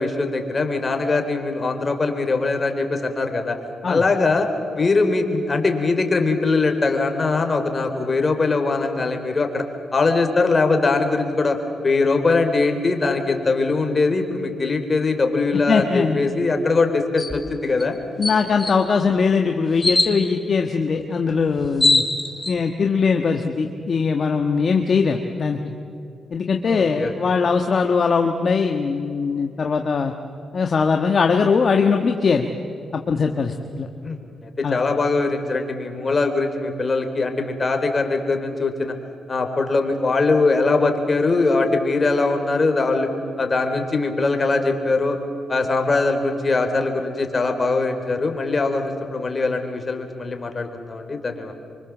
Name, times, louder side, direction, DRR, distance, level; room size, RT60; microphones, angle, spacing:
voice 1, 0.0-3.5 3.9-4.5 4.8-9.6 9.9-11.6 11.8-18.0 26.6-27.1 34.0-34.2 34.4-38.9 39.3-43.1 43.4-45.2 45.5-51.5, left 3 dB, 35° left, 5 dB, 3.9 m, -21 dB
voice 2, 15.7-16.2 18.2-22.0 22.5-25.6 26.3-30.1 30.5-32.5 32.9-33.9 34.6-34.8, left 5 dB, 50° left, 4 dB, 1.5 m, -21 dB
sound 1, 17.2-17.4 17.8-17.9 18.2-18.7 19.8-20.1 21.3-21.4 21.6-22.5, left 2 dB, 20° left, 3.0 m, -20 dB
25.5 x 24.5 x 7.4 m, 2.6 s
cardioid pair, 65°, 0 cm